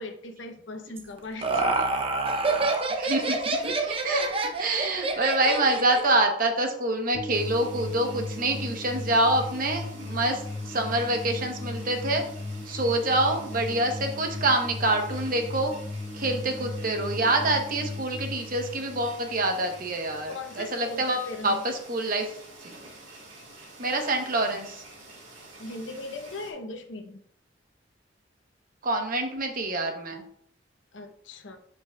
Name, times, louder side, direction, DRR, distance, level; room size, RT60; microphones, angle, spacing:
voice 1, 0.0-2.2 4.1-4.4 5.1-5.3 20.3-21.6 25.6-27.2 30.9-31.6, left 2 dB, 80° left, 6 dB, 0.8 m, -39 dB
Laughter, 1.0-6.1, right 3 dB, 30° right, 0.6 m, -27 dB
voice 2, 2.9-4.3 4.6-12.2 12.7-15.7 16.1-21.5 21.9-22.3 22.6-22.8 23.8-24.8 28.8-30.2, right 2 dB, 50° right, 4 dB, 0.9 m, -26 dB
sound 1, 7.1-20.3, left 2 dB, 30° left, 1.8 m, -37 dB
sound 2, 7.3-26.5, right 2 dB, 85° right, 2.4 m, -48 dB
8.1 x 5.3 x 2.3 m, 0.65 s
head